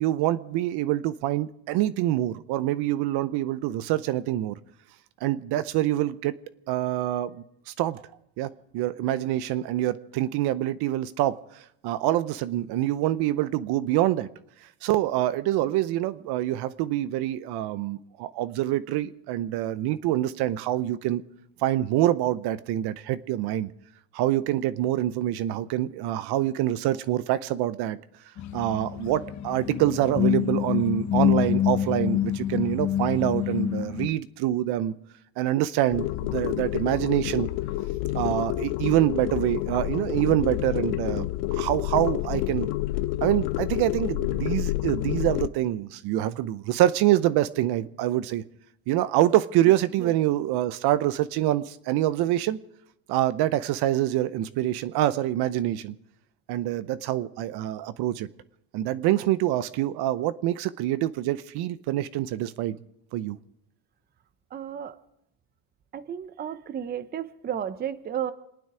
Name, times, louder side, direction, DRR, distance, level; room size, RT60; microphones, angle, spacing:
voice 1, 0.0-4.6 5.2-6.3 6.7-8.0 8.4-14.3 14.8-21.2 21.6-23.7 24.1-28.0 28.5-34.9 35.4-37.5 38.1-42.7 43.2-48.4 48.9-52.6 53.1-55.9 56.5-58.3 58.7-62.8 63.1-63.4, right 14 dB, 55° right, 15 dB, 0.8 m, -26 dB
sound 1, 28.4-34.1, left 10 dB, 35° left, 0.9 m, -26 dB
sound 2, 35.9-45.5, left 16 dB, 70° left, 0.7 m, -29 dB
voice 2, 64.5-65.0 65.9-68.3, right 9 dB, 20° right, 12 dB, 0.6 m, -33 dB
28.0 x 9.4 x 4.8 m, 0.80 s
supercardioid pair, 120°, 47 cm